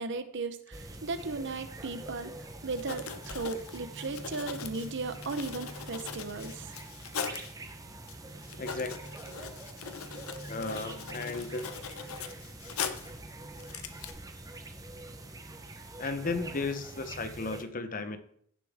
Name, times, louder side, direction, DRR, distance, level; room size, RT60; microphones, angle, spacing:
voice 1, 0.0-6.7, right 3 dB, 60° right, 10 dB, 1.0 m, -36 dB
sound 1, 0.7-17.6, right 2 dB, 15° right, 1.0 m, -45 dB
Writing, 2.5-2.6 2.8-7.5 8.1-8.2 8.4-13.2 13.6-14.1, left 7 dB, 85° left, 0.9 m, -40 dB
voice 2, 8.6-9.2 10.5-11.7 16.0-18.2, left 3 dB, 40° left, 9 dB, 0.9 m, -35 dB
16.0 x 6.9 x 3.7 m, 0.65 s
head